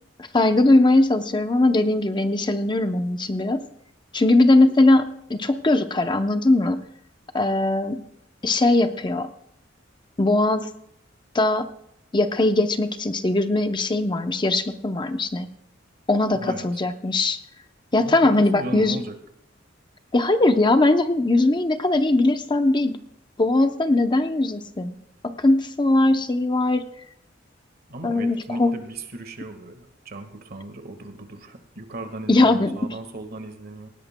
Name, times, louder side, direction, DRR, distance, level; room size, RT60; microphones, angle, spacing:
voice 1, 0.3-3.7 4.1-6.8 7.3-8.0 8.4-9.3 10.2-10.7 11.3-11.7 12.1-15.5 16.1-17.4 17.9-19.0 20.1-23.0 23.4-25.0 25.2-26.8 28.0-28.7 32.3-32.8, left 2 dB, 25° left, 8 dB, 0.7 m, -20 dB
voice 2, 16.3-16.8 18.0-19.2 27.9-33.9, right 1 dB, 55° right, 7 dB, 1.6 m, -36 dB
19.0 x 17.0 x 2.2 m, 0.74 s
head